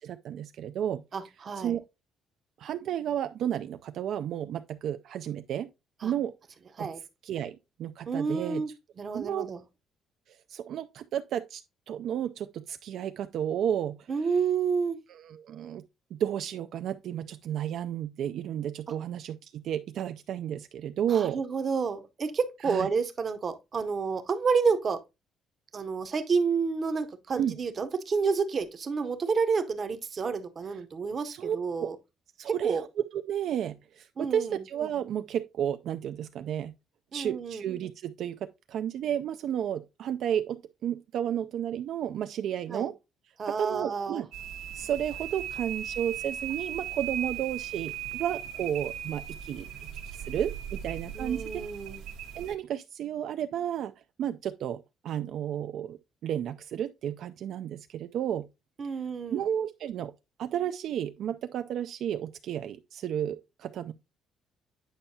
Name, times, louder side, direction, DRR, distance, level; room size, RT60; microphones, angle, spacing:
voice 1, 0.0-1.0 1.6-1.8 2.6-5.7 6.0-6.3 6.8-8.6 9.1-9.5 10.3-11.6 11.9-14.3 15.1-15.8 16.1-21.4 22.6-22.9 27.3-27.6 30.7-30.8 31.2-31.9 32.4-36.7 37.1-42.9 43.4-44.3 44.7-49.7 50.1-51.5 52.4-53.9 54.2-58.5 59.3-60.1 60.4-63.9, right 10 dB, 55° right, 0.3 m, -32 dB
voice 2, 1.1-1.7 6.0-6.1 6.8-7.0 8.1-8.7 9.0-9.6 14.1-15.0 21.1-25.0 25.7-32.0 32.5-32.8 34.2-34.6 37.1-37.7 42.7-42.9 43.4-44.2 51.1-52.0 58.8-59.4, right 5 dB, 30° right, 0.7 m, -29 dB
sound 1, 44.3-52.5, right 9 dB, 75° right, 1.1 m, -38 dB
8.7 x 5.5 x 2.7 m
cardioid pair, 165°, 0 cm